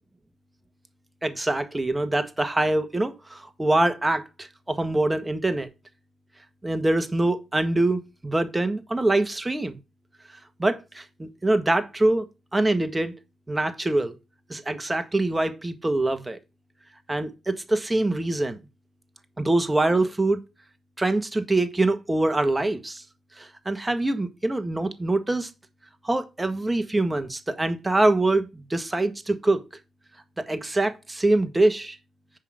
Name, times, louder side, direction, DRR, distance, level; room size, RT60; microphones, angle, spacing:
voice 1, 1.2-5.7 6.6-9.8 10.6-12.2 12.5-13.1 13.5-14.1 14.5-16.4 17.1-18.6 19.4-20.4 21.0-23.0 23.4-25.5 26.0-29.6 30.4-32.0, right 2 dB, 15° right, 1.4 m, -24 dB
9.9 x 3.8 x 6.3 m
cardioid pair, 85°, 0 cm